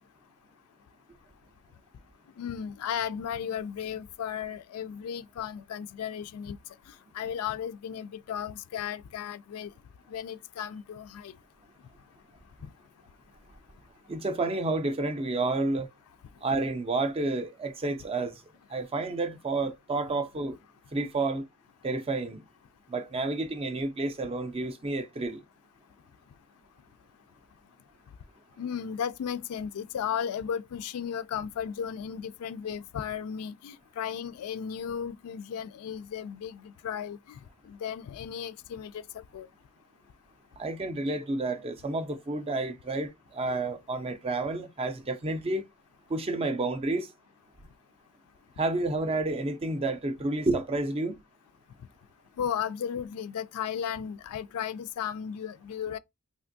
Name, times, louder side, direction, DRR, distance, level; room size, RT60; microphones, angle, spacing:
voice 1, 2.4-6.6 7.1-9.7 10.1-11.3 28.6-37.4 37.7-39.5 52.4-56.0, left 8 dB, 75° left, 0.3 m, -35 dB
voice 2, 14.1-15.9 16.4-18.4 18.7-20.6 20.9-21.5 21.8-22.4 22.9-25.4 40.6-45.6 46.1-47.1 48.6-51.2, right 2 dB, 25° right, 0.4 m, -30 dB
3.4 x 2.5 x 2.6 m
head